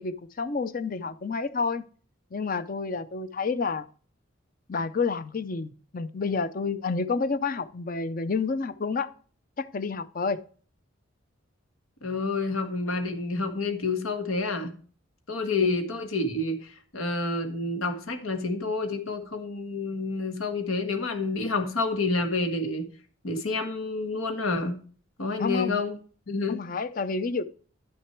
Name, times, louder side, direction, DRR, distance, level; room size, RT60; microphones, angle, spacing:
voice 1, 0.0-1.9 2.3-3.8 4.7-9.1 9.6-10.4 15.6-15.7 25.4-25.7 26.5-27.4, left 4 dB, 45° left, 13 dB, 0.5 m, -29 dB
voice 2, 12.0-14.7 15.3-22.8 23.2-24.8 25.2-26.0 26.3-26.6, left 3 dB, 90° left, 7 dB, 1.6 m, -29 dB
11.0 x 6.3 x 4.5 m, 0.42 s
head